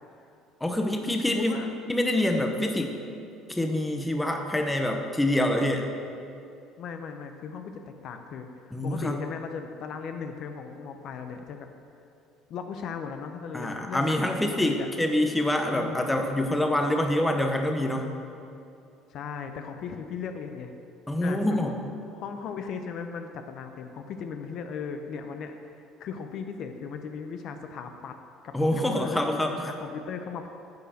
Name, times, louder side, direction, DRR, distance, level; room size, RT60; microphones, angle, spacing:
voice 1, 0.6-3.0 3.5-5.9 8.7-9.2 13.5-18.1 21.1-21.7 28.5-29.7, left 1 dB, 5° left, 3 dB, 0.9 m, -26 dB
voice 2, 1.3-1.7 6.8-11.7 12.5-14.9 15.7-16.4 19.1-20.7 21.2-21.7 22.1-28.1 28.4-30.5, left 6 dB, 55° left, 6 dB, 0.7 m, -37 dB
10.5 x 5.6 x 6.4 m, 2.6 s
cardioid pair, 135°, 0 cm